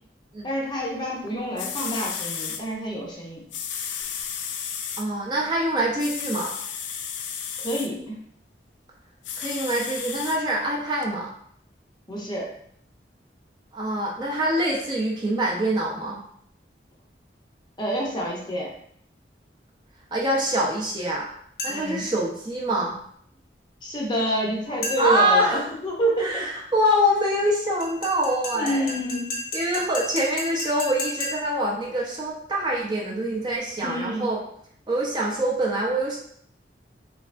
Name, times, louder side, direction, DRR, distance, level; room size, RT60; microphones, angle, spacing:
voice 1, 0.4-3.5 7.6-8.2 12.1-12.5 17.8-18.7 21.7-22.0 23.8-26.5 28.5-29.3 33.8-34.3, right 1 dB, 25° left, -2 dB, 0.6 m, -28 dB
sound 1, 1.3-1.4 1.6-2.6 3.5-5.0 6.0-7.9 9.2-10.4 11.0-11.1, left 7 dB, 85° left, 0.4 m, -33 dB
voice 2, 5.0-6.5 9.4-11.3 13.7-16.2 20.1-21.3 21.6-23.0 25.0-25.7 26.2-28.9 29.5-34.4 34.9-36.2, right 1 dB, 25° right, -3 dB, 0.5 m, -25 dB
sound 2, 21.6-22.0 24.8-25.3 27.8-31.6, left 2 dB, 55° left, 0.8 m, -33 dB
3.3 x 3.3 x 2.5 m, 0.66 s
head